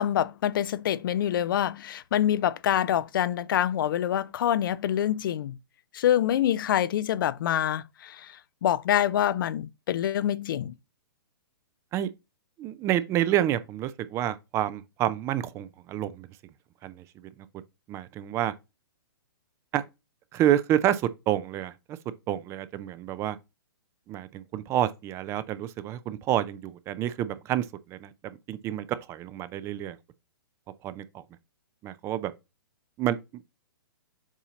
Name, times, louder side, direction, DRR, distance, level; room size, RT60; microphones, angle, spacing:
voice 1, 0.0-5.6 5.9-8.3 8.6-10.7, left 11 dB, 60° left, 0.4 m, -26 dB
voice 2, 12.6-16.3 16.8-17.0 17.9-18.5 19.7-19.8 20.3-22.0 22.3-23.4 24.1-30.0 30.8-31.2 31.8-32.3 33.0-33.4, right 12 dB, 20° right, 0.4 m, -29 dB
7.3 x 2.8 x 4.9 m
hypercardioid pair, 135°, 13 cm